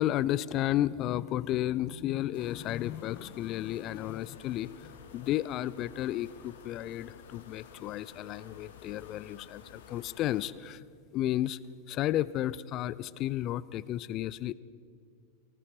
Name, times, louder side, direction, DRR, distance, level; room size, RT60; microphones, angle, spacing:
voice 1, 0.0-10.8 11.1-11.6 11.9-14.5, left 13 dB, 35° left, 20 dB, 0.4 m, -32 dB
sound 1, 2.3-10.5, left 5 dB, 55° left, 1.7 m, -52 dB
19.0 x 18.5 x 3.8 m, 2.3 s
figure-of-eight pair, 90°, 0 cm